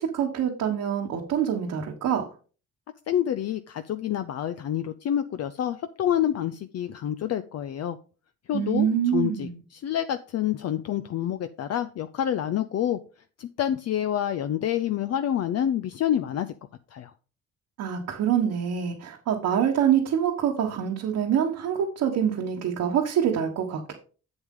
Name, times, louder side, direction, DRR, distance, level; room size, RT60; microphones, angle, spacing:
voice 1, 0.0-2.3 8.5-9.6 17.8-23.9, right 9 dB, 75° right, 0 dB, 1.4 m, -25 dB
voice 2, 3.1-8.0 8.5-13.0 13.4-16.5 16.9-17.1, left 10 dB, 55° left, 11 dB, 0.5 m, -28 dB
7.8 x 7.3 x 3.7 m, 0.37 s
cardioid pair, 90°, 30 cm